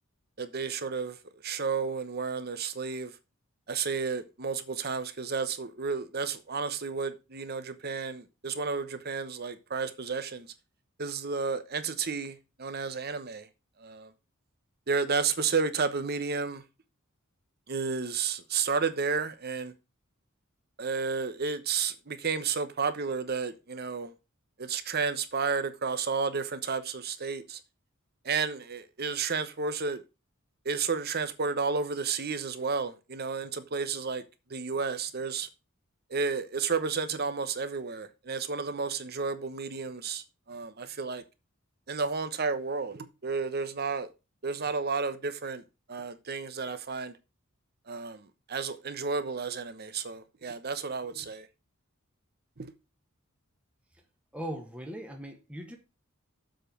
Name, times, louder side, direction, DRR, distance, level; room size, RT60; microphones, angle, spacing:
voice 1, 0.4-1.2 1.4-3.1 3.7-10.5 11.0-13.5 13.8-14.1 14.9-16.6 17.7-19.7 20.8-24.1 24.6-27.6 28.2-30.0 30.6-34.2 34.5-35.5 36.1-41.2 41.9-44.1 44.4-45.6 45.9-47.2 47.9-51.5 52.6-52.7, right 5 dB, 50° right, 1.0 m, -32 dB
voice 2, 54.3-55.8, right 1 dB, 5° right, 1.3 m, -39 dB
7.5 x 5.2 x 5.9 m
head